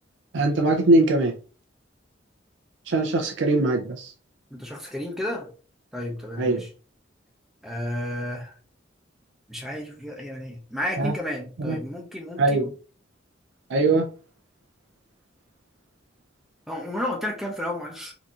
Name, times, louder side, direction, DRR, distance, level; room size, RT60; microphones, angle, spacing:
voice 1, 0.3-1.3 2.9-4.1 6.4-6.6 11.0-11.1 11.6-11.8 12.4-12.7 13.7-14.1, right 2 dB, 75° right, 0.5 m, -21 dB
voice 2, 4.5-5.5 5.9-6.7 7.6-8.5 9.5-12.7 16.7-18.1, left 1 dB, ahead, 0.6 m, -32 dB
3.8 x 2.7 x 2.4 m
head